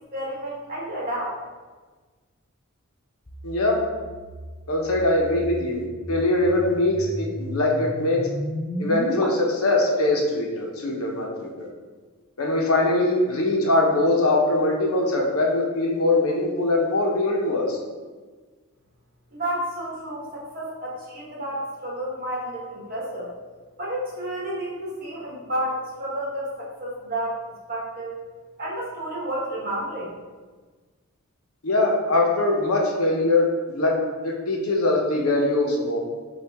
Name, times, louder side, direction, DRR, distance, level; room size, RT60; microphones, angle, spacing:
voice 1, 0.0-1.4 19.3-23.3 23.8-27.4 27.7-28.1 28.6-30.1, right 1 dB, 45° right, -5 dB, 1.3 m, -31 dB
sound 1, 3.3-9.2, equal, 20° left, 0.4 m, -34 dB
voice 2, 3.4-3.8 4.7-8.2 8.8-11.7 12.4-17.8 31.6-33.9 34.2-36.0, left 2 dB, 75° left, -1 dB, 0.9 m, -22 dB
5.8 x 2.5 x 3.5 m, 1.4 s
head